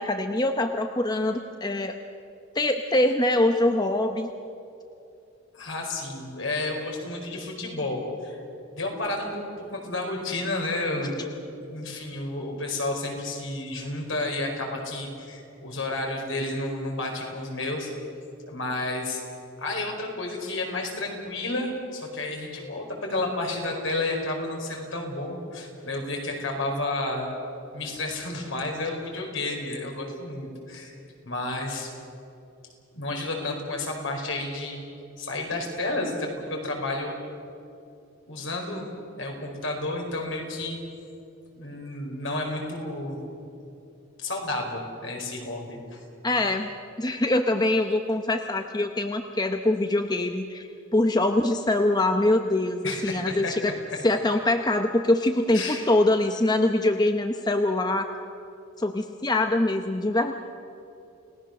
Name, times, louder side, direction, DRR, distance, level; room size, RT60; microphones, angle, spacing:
voice 1, 0.0-2.0 2.5-4.3 46.2-46.7 47.0-53.7 54.0-58.1 58.8-60.3, left 2 dB, 20° left, 6 dB, 0.7 m, -24 dB
voice 2, 5.5-8.4 8.7-11.1 11.5-17.9 18.5-19.2 19.6-27.3 27.7-30.9 31.2-31.9 32.9-34.8 35.2-37.1 38.3-38.9 39.2-40.8 41.6-43.2 44.2-46.0 52.8-53.5 55.5-55.8, left 2 dB, 70° left, 1 dB, 4.9 m, -31 dB
29.5 x 18.5 x 6.6 m, 2.7 s
head